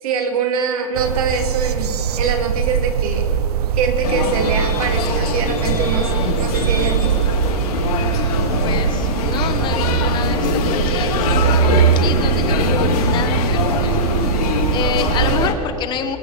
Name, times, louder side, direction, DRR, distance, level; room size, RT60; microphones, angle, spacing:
voice 1, 0.0-3.2 3.7-7.3, right 5 dB, 70° right, 3 dB, 2.7 m, -23 dB
sound 1, 1.0-15.5, right 8 dB, 90° right, 0.8 m, -21 dB
sound 2, 4.0-15.5, left 6 dB, 75° left, 2.4 m, -23 dB
voice 2, 7.9-14.1 14.3-16.2, left 7 dB, 25° left, 8 dB, 0.9 m, -28 dB
24.0 x 9.0 x 4.9 m, 2.9 s
supercardioid pair, 155°, 19 cm